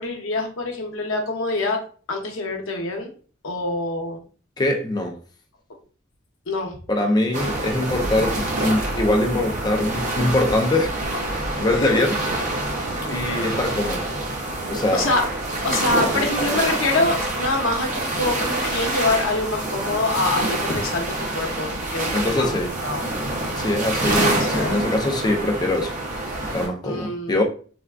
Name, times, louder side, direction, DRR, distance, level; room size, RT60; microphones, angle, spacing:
voice 1, 0.0-1.8 2.1-3.1 3.4-4.2 6.5-6.8 11.7-12.0 14.9-15.2 15.6-23.1 24.3-24.8 26.8-27.3, left 2 dB, 75° left, 0.7 m, -25 dB
voice 2, 4.6-5.2 6.9-11.0 11.6-12.2 13.1-14.0 14.7-15.1 16.1-16.3 22.1-22.7 23.6-25.9 26.4-27.4, left 1 dB, 20° left, 0.4 m, -23 dB
sound 1, 7.3-26.7, right 2 dB, 40° right, 0.7 m, -26 dB
3.4 x 2.3 x 2.3 m
head